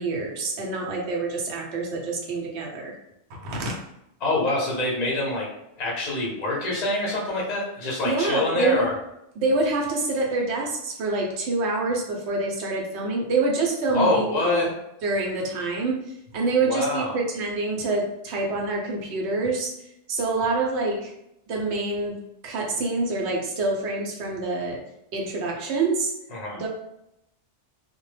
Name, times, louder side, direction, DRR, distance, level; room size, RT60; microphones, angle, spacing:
voice 1, 0.0-2.9 3.3-3.7 8.0-8.9 9.4-14.7 15.0-16.0 16.3-19.7 20.1-21.1 21.5-24.8 25.1-26.1 26.5-26.7, right 3 dB, 75° right, -1 dB, 0.9 m, -26 dB
voice 2, 4.2-5.5 5.8-8.9 13.9-14.7 16.6-17.1 26.3-26.6, left 2 dB, 45° left, -4 dB, 0.6 m, -25 dB
2.1 x 2.1 x 3.1 m, 0.82 s
omnidirectional pair, 1.2 m